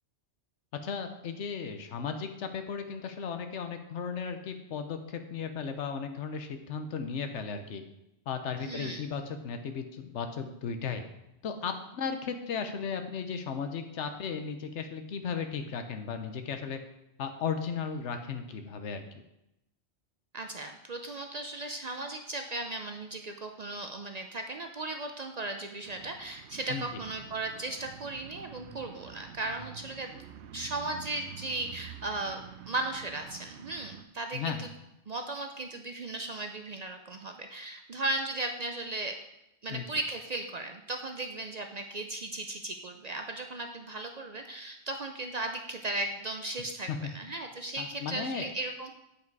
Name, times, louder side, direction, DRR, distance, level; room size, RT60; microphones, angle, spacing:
voice 1, 0.8-7.8 8.3-11.0 11.4-16.8 17.2-19.0 26.7-26.9 34.3-34.7 39.7-39.9 46.9-47.1 47.8-48.5, left 6 dB, 85° left, 7 dB, 1.1 m, -35 dB
voice 2, 8.6-9.1 20.3-30.1 30.5-34.7 35.1-39.1 39.6-48.9, right 2 dB, 50° right, 5 dB, 0.5 m, -36 dB
sound 1, 25.8-34.0, right 9 dB, 75° right, 0.8 m, -48 dB
8.4 x 5.0 x 4.6 m, 0.88 s
omnidirectional pair, 1.2 m